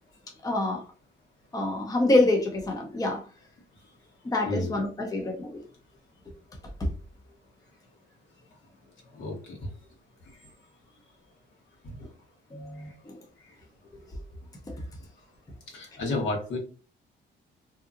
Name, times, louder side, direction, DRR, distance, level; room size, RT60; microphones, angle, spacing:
voice 1, 0.4-0.8 1.5-3.2 4.2-5.6 6.8-6.9 12.5-13.2 13.9-14.0, left 2 dB, 20° left, 0.6 m, -26 dB
voice 2, 9.1-9.7 11.8-11.9 12.8-12.9 13.4-13.5 15.7-16.6, left 2 dB, 70° left, 1.2 m, -32 dB
2.7 x 2.3 x 2.4 m
cardioid pair, 90°, 20 cm